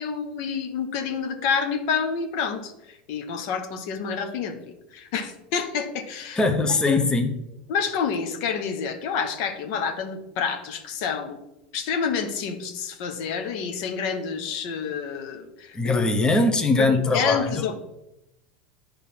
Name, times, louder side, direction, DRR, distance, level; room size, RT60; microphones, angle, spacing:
voice 1, 0.0-2.7 3.1-4.6 4.9-6.4 6.9-7.0 7.7-11.4 11.7-16.1 16.8-17.7, left 6 dB, 60° left, 7 dB, 1.0 m, -28 dB
voice 2, 6.4-7.3 15.7-17.6, left 3 dB, 15° left, 5 dB, 0.9 m, -21 dB
9.2 x 3.5 x 5.9 m, 0.89 s
hypercardioid pair, 95°, 5 cm